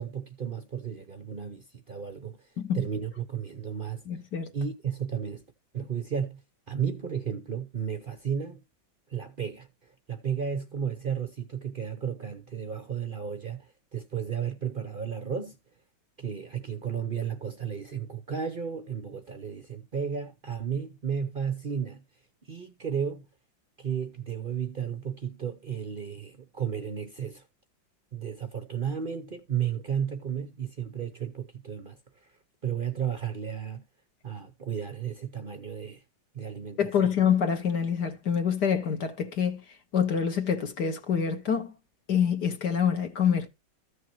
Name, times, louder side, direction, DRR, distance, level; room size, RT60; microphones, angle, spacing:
voice 1, 0.0-2.5 2.7-4.0 4.5-5.4 5.7-8.6 9.1-9.7 10.1-15.6 16.2-22.0 22.4-23.3 23.8-27.4 28.1-32.0 32.6-33.8 34.2-36.0 36.3-37.1, right 7 dB, 50° right, 0.6 m, -33 dB
voice 2, 4.1-4.5 36.8-39.6 39.9-41.7 42.1-43.5, left 7 dB, 60° left, 2.0 m, -26 dB
14.5 x 6.5 x 3.0 m
omnidirectional pair, 2.1 m